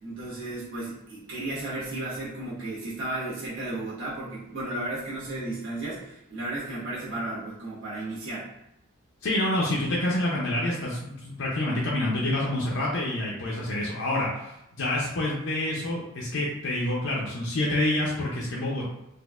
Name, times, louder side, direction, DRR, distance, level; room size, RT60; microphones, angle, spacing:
voice 1, 0.0-8.5, right 2 dB, 60° right, -9 dB, 1.3 m, -34 dB
voice 2, 9.2-18.9, left 1 dB, 60° left, -4 dB, 0.5 m, -27 dB
4.1 x 2.4 x 2.4 m, 0.86 s
head